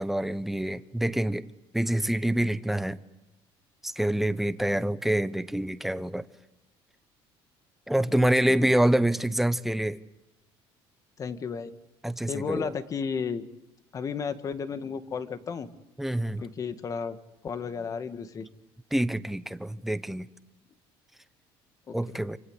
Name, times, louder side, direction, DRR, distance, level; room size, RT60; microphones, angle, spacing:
voice 1, 0.0-1.5 1.7-3.0 3.8-6.2 7.9-10.0 12.0-12.7 16.0-16.5 18.9-20.3 21.9-22.4, right 1 dB, ahead, 1.0 m, -26 dB
voice 2, 8.1-8.8 11.2-11.7 12.3-13.4 13.9-15.7 16.4-18.5 21.9-22.0, left 6 dB, 35° left, 2.0 m, -34 dB
28.0 x 25.5 x 8.2 m
cardioid pair, 135°, 10 cm